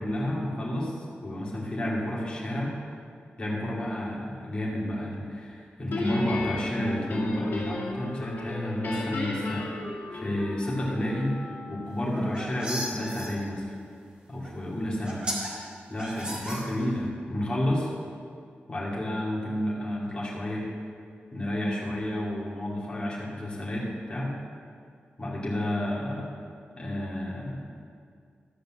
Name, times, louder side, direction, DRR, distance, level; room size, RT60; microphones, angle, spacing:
voice 1, 0.0-2.7 3.4-11.3 11.7-13.7 14.3-15.2 15.9-17.9 18.7-20.6 21.3-24.3 25.2-26.2 26.8-27.9, left 1 dB, 25° left, -5 dB, 2.6 m, -31 dB
Guitar, 5.9-8.1 8.4-10.7, left 2 dB, 65° left, 2.1 m, -34 dB
Wind instrument woodwind instrument, 6.6-12.4, left 2 dB, 45° left, 1.1 m, -41 dB
sound 1, 12.0-13.3 14.4-14.5 15.0-15.5 16.0-17.1, equal, 25° right, 2.1 m, -34 dB
13.5 x 5.2 x 7.7 m, 2.2 s
wide cardioid pair, 155°, 4 cm